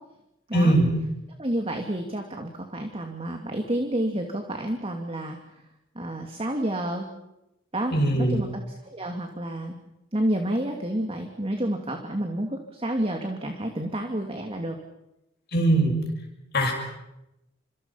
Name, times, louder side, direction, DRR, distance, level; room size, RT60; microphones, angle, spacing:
voice 1, 0.5-0.9 7.9-8.4 15.5-15.9 16.5-16.7, right 1 dB, 50° left, 1 dB, 6.6 m, -20 dB
voice 2, 1.4-5.4 5.9-7.1 7.7-9.7 10.1-14.8, right 1 dB, 25° right, 4 dB, 2.7 m, -29 dB
30.0 x 28.0 x 5.9 m, 0.89 s
head